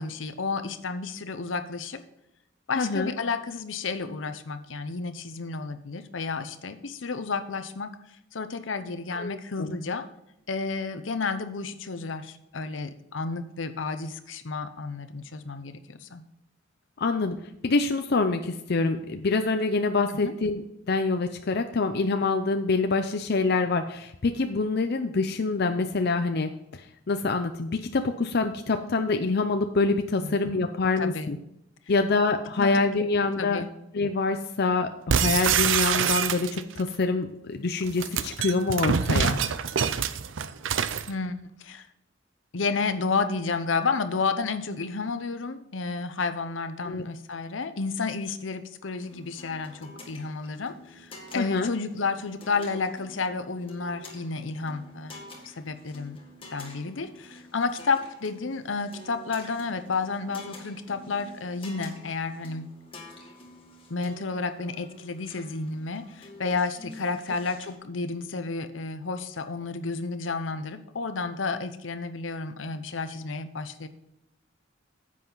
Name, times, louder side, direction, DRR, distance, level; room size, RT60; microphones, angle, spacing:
voice 1, 0.0-2.0 2.7-7.9 8.3-10.0 10.5-16.2 20.1-20.3 30.2-30.3 31.0-31.4 32.6-32.7 33.0-33.1 33.4-33.7 41.1-41.3 41.6-41.9 42.5-56.2 56.5-62.7 63.9-73.9, left 4 dB, 90° left, 10 dB, 0.8 m, -31 dB
voice 2, 2.8-3.1 9.1-9.8 17.0-17.4 17.6-20.6 20.9-26.8 27.1-31.4 31.9-33.6 33.9-39.4 46.9-47.0 51.4-51.7, left 3 dB, 60° left, 7 dB, 0.6 m, -26 dB
sound 1, 35.1-36.8 37.8-41.1, right 7 dB, 85° right, 0.6 m, -25 dB
sound 2, 49.0-67.8, left 1 dB, 30° left, 1.8 m, -48 dB
10.0 x 7.6 x 4.0 m, 0.83 s
head